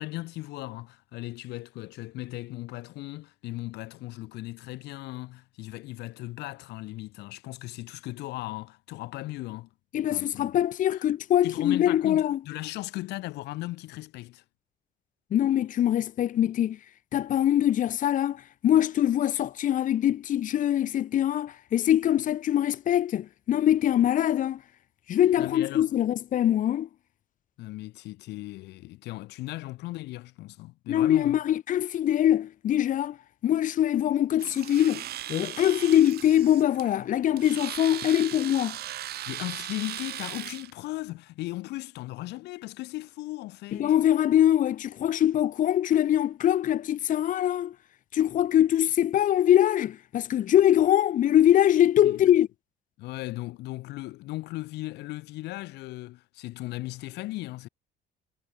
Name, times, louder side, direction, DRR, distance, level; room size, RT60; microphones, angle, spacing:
voice 1, 0.0-9.7 10.1-10.5 10.9-11.0 11.4-14.4 25.4-25.9 27.6-31.4 39.3-43.9 52.0-52.2 53.0-57.7, left 19 dB, 85° left, 2.8 m, -37 dB
voice 2, 9.9-12.4 15.3-16.8 17.1-24.6 25.1-26.9 30.9-33.2 33.4-35.0 35.3-38.8 43.7-47.7 48.1-52.5, left 11 dB, 50° left, 0.8 m, -23 dB
Domestic sounds home sounds, 34.4-40.7, right 13 dB, 70° right, 5.5 m, -38 dB
cardioid pair, 110°, 17 cm